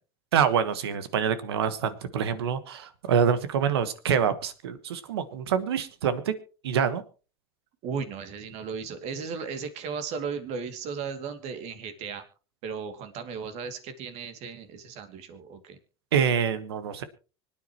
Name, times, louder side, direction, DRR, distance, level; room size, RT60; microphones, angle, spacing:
voice 1, 0.3-6.3 6.6-7.0 16.1-17.0, right 7 dB, 90° right, 13 dB, 1.4 m, -26 dB
voice 2, 7.8-12.2 12.6-15.8, right 5 dB, 55° right, 8 dB, 2.5 m, -36 dB
25.0 x 9.4 x 3.0 m, 0.35 s
supercardioid pair, 100°, 13 cm